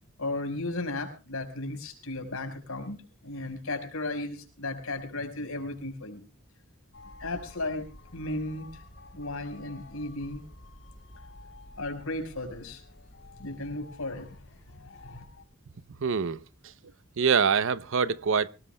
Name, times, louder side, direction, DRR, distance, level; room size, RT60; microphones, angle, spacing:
voice 1, 0.2-3.0 3.2-6.2 7.2-7.9 8.1-8.7 9.1-10.4 11.8-12.8 13.4-14.4 14.7-15.2, left 2 dB, 80° left, 4.8 m, -35 dB
sound 1, 6.9-15.4, left 2 dB, 60° left, 4.3 m, -50 dB
voice 2, 16.0-16.4 16.6-16.7 17.2-18.5, right 6 dB, 65° right, 0.6 m, -24 dB
25.0 x 18.0 x 2.2 m
head